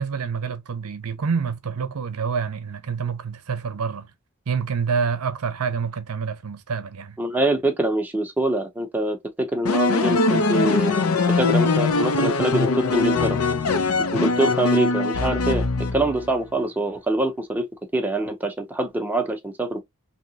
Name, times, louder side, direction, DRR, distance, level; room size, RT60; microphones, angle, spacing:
voice 1, 0.0-4.1 4.5-7.2, right 6 dB, 80° right, 0.6 m, -27 dB
voice 2, 7.2-11.0 11.4-13.4 14.1-15.6 15.9-17.7 17.9-19.8, right 1 dB, 10° right, 0.6 m, -24 dB
sound 1, 9.6-16.3, left 3 dB, 70° left, 0.6 m, -21 dB
3.2 x 2.8 x 2.7 m
head